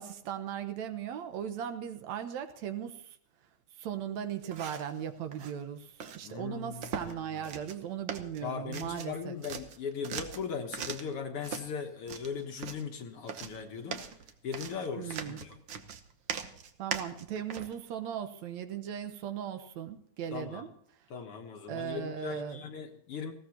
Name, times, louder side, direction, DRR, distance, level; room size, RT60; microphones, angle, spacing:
voice 1, 0.0-3.2 3.8-9.3 14.9-15.4 16.8-20.7 21.7-22.6, right 9 dB, 75° right, 9 dB, 2.3 m, -38 dB
sound 1, 4.4-5.0 5.3-5.5 6.0-6.2 6.8-7.2 7.4-7.8 8.1-9.2 9.4-11.1 11.4-11.7 12.1-12.9 13.3-17.7, right 7 dB, 60° right, 1.4 m, -40 dB
voice 2, 6.2-7.4 8.4-14.1 14.4-15.6 20.3-20.7 21.1-23.3, left 6 dB, 60° left, 4 dB, 1.9 m, -39 dB
19.5 x 16.0 x 2.9 m, 0.68 s
omnidirectional pair, 3.3 m